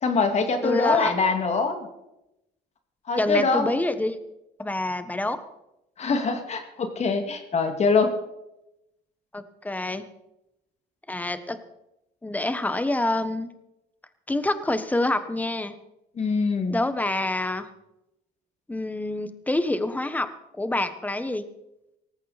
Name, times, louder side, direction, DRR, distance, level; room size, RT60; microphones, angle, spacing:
voice 1, 0.0-1.9 3.1-3.7 6.0-8.1 16.2-16.8, left 4 dB, 40° left, 6 dB, 2.4 m, -23 dB
voice 2, 0.6-1.1 3.2-4.2 4.6-5.4 9.3-10.0 11.1-11.6 12.2-13.5 14.3-15.7 16.7-17.7 18.7-20.3 20.5-21.4, left 2 dB, 10° left, 11 dB, 1.3 m, -26 dB
18.0 x 15.0 x 4.2 m, 0.88 s
cardioid pair, 110°, 17 cm